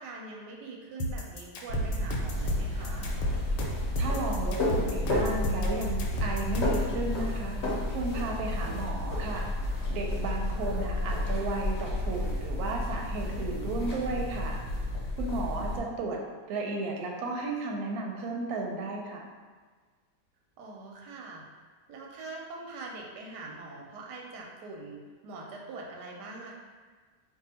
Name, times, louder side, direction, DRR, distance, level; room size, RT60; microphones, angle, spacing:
voice 1, 0.0-3.1 10.5-10.9 20.6-21.4 21.9-26.5, right 3 dB, 90° right, -1 dB, 1.2 m, -43 dB
sound 1, 1.0-6.9, left 1 dB, 90° left, 1.2 m, -33 dB
sound 2, 1.7-15.8, left 1 dB, 50° left, 0.9 m, -31 dB
voice 2, 4.0-9.5 9.9-14.6 15.2-16.2 16.5-19.2, right 3 dB, 70° right, 0 dB, 1.0 m, -34 dB
2.7 x 2.5 x 4.1 m, 1.5 s
omnidirectional pair, 1.8 m